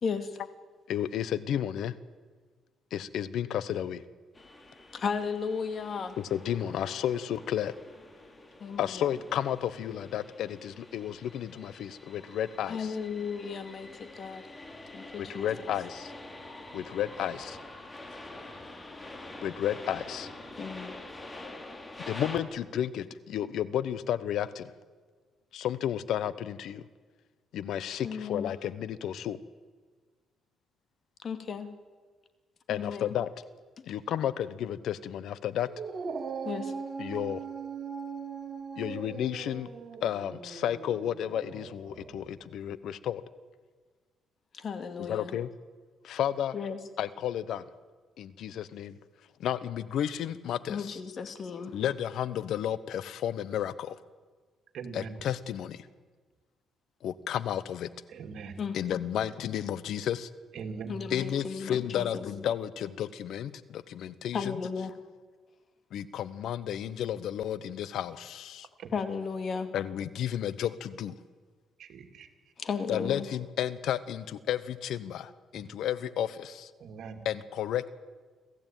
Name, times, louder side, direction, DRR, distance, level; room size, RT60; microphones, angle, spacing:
voice 1, 0.0-0.4 4.9-6.2 8.6-9.1 12.7-14.5 14.9-15.5 20.6-20.9 28.0-28.5 31.2-31.7 32.7-33.2 33.8-33.9 36.4-36.7 44.5-45.4 46.5-46.8 50.7-51.8 58.6-58.8 60.9-62.2 64.3-64.9 68.9-69.7 72.6-73.2, left 5 dB, 50° left, 9 dB, 2.3 m, -35 dB
voice 2, 0.9-1.9 2.9-4.0 6.2-7.7 8.8-13.0 15.2-16.1 16.7-17.6 19.4-20.3 22.1-24.7 25.5-26.9 27.5-29.4 32.7-33.3 33.9-35.7 37.0-37.4 38.8-39.7 40.0-43.2 45.0-45.5 46.0-46.6 47.0-47.6 48.2-49.0 49.4-51.0 51.7-54.0 54.9-55.9 57.0-57.9 58.7-60.3 61.1-64.6 65.9-68.7 69.7-71.2 72.9-76.7 77.2-77.9, left 10 dB, 75° left, 17 dB, 1.0 m, -32 dB
sound 1, 4.3-22.4, left 2 dB, 20° left, 3.1 m, -46 dB
Dog, 35.7-42.3, right 5 dB, 50° right, 3.2 m, -40 dB
voice 3, 54.7-55.1 58.1-58.5 60.5-60.9 68.8-68.9 71.8-72.3 75.5-75.6 76.8-77.2, right 5 dB, 70° right, 5 dB, 2.7 m, -41 dB
26.5 x 15.0 x 9.1 m, 1.5 s
cardioid pair, 90°, 0 cm